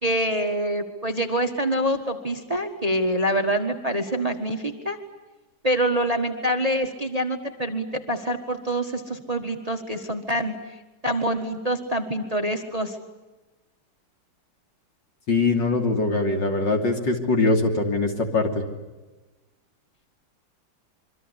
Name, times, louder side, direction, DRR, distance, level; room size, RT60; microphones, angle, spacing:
voice 1, 0.0-5.0 5.6-10.5 11.0-13.0, right 1 dB, 20° right, 5 dB, 1.6 m, -25 dB
voice 2, 15.3-18.6, left 3 dB, 60° left, 3 dB, 3.7 m, -22 dB
26.5 x 24.0 x 8.3 m, 1.2 s
omnidirectional pair, 2.3 m